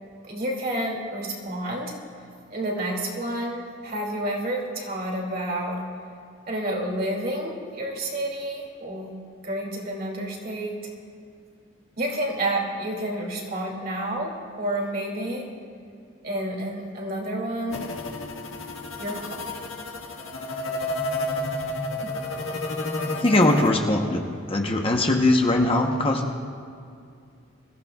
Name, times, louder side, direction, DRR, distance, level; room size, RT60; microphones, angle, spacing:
voice 1, 0.3-1.9 2.5-5.9 6.5-9.2 9.4-10.8 12.0-15.5 16.2-17.9 19.0-19.4, right 1 dB, 45° right, -1 dB, 2.5 m, -29 dB
sound 1, 17.7-23.7, left 2 dB, 85° left, 1.6 m, -31 dB
voice 2, 23.1-26.2, left 2 dB, 30° left, 2 dB, 0.9 m, -21 dB
24.5 x 15.0 x 2.4 m, 2.4 s
head